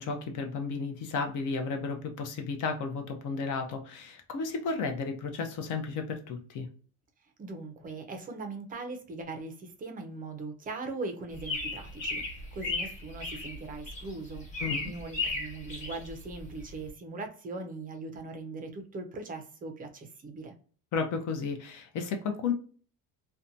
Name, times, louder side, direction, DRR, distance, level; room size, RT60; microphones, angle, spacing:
voice 1, 0.0-6.7 14.6-14.9 20.9-22.5, left 4 dB, 55° left, 5 dB, 0.6 m, -33 dB
voice 2, 7.4-14.5 14.8-20.5, right 3 dB, 25° right, 5 dB, 0.4 m, -40 dB
sound 1, 11.3-16.9, left 3 dB, 20° left, 1.1 m, -36 dB
2.7 x 2.2 x 2.5 m, 0.42 s
cardioid pair, 150°, 37 cm